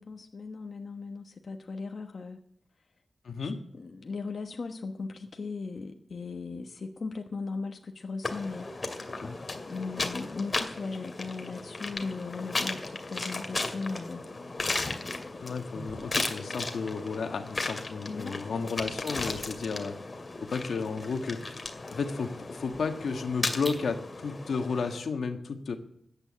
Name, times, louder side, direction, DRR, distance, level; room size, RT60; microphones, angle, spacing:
voice 1, 0.0-2.4 3.4-8.7 9.6-14.2 18.0-18.5, left 4 dB, 60° left, 4 dB, 1.2 m, -38 dB
voice 2, 3.2-3.6 9.2-9.3 15.4-20.0 20.5-21.6 21.9-25.8, left 5 dB, 90° left, 6 dB, 1.5 m, -33 dB
sound 1, 8.2-25.0, left 3 dB, 40° left, 2.2 m, -36 dB
sound 2, 15.6-23.9, equal, 15° right, 4.1 m, -51 dB
14.0 x 8.9 x 8.6 m, 0.68 s
wide cardioid pair, 85°, 0 cm